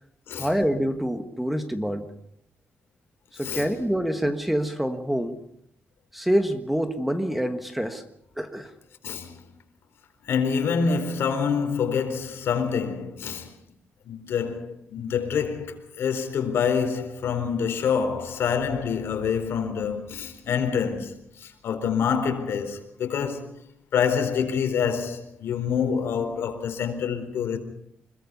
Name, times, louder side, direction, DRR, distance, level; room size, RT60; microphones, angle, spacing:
voice 1, 0.3-2.0 3.4-5.4 6.1-8.0 8.4-8.7, equal, 5° right, 1.4 m, -26 dB
voice 2, 3.4-3.7 9.0-9.4 10.2-13.5 14.0-23.5 23.9-27.6, left 6 dB, 75° left, 4.2 m, -26 dB
26.0 x 21.5 x 5.5 m
wide cardioid pair, 170°, 4 cm